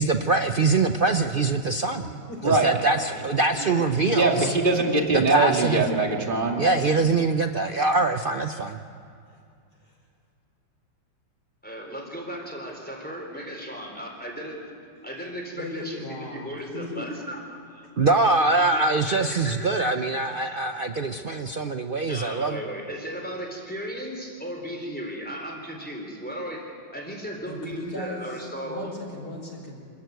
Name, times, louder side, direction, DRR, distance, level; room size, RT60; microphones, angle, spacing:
voice 1, 0.0-2.0 2.4-4.5 5.1-5.8 6.6-8.8 18.0-22.6, right 3 dB, 75° right, 7 dB, 0.5 m, -23 dB
voice 2, 1.9-2.5 3.0-3.1 3.7-4.6 15.6-17.3 18.6-18.7 27.5-29.8, left 2 dB, 60° left, -1 dB, 5.3 m, -36 dB
voice 3, 4.1-6.6, right 3 dB, 25° right, 1 dB, 2.5 m, -22 dB
voice 4, 11.6-14.7 15.0-17.9 18.5-20.1 22.0-29.0, equal, 5° left, 0 dB, 3.8 m, -36 dB
26.5 x 14.5 x 9.4 m, 2.4 s
omnidirectional pair, 2.0 m